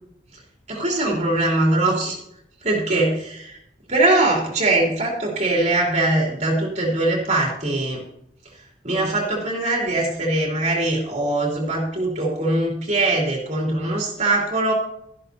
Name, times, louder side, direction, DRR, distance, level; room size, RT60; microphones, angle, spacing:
voice 1, 0.7-2.2 2.6-3.6 3.9-8.0 8.8-14.7, right 2 dB, 40° right, -2 dB, 2.9 m, -21 dB
13.5 x 12.0 x 2.8 m, 0.75 s
head